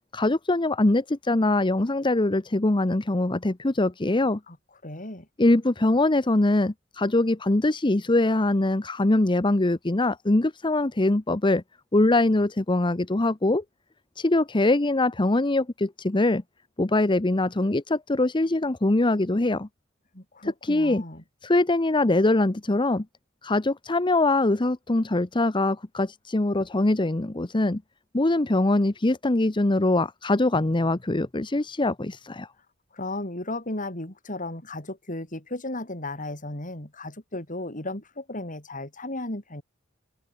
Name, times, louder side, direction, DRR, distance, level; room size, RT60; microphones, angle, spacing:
voice 1, 0.1-4.4 5.4-11.6 11.9-13.6 14.2-16.4 16.8-19.7 20.4-21.0 21.4-23.0 23.4-27.8 28.1-32.5, left 2 dB, 25° left, 0.8 m, -23 dB
voice 2, 4.8-5.3 20.1-21.2 32.9-39.6, left 2 dB, 40° left, 5.7 m, -35 dB
open air
head